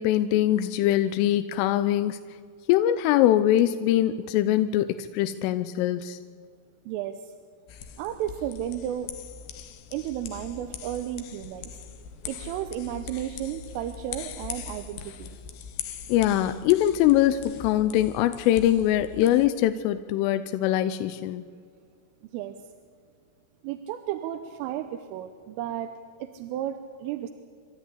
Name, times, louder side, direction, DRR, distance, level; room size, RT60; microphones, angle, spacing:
voice 1, 0.0-2.2 2.7-6.2 16.1-21.4, left 12 dB, 85° left, 11 dB, 3.2 m, -23 dB
voice 2, 6.9-7.3 8.0-9.1 9.9-15.4 22.3-22.6 23.6-26.0 26.2-27.3, right 11 dB, 85° right, 7 dB, 3.4 m, -33 dB
sound 1, 7.7-19.5, left 8 dB, 70° left, 2.6 m, -41 dB
27.5 x 13.0 x 10.0 m, 2.1 s
omnidirectional pair, 5.7 m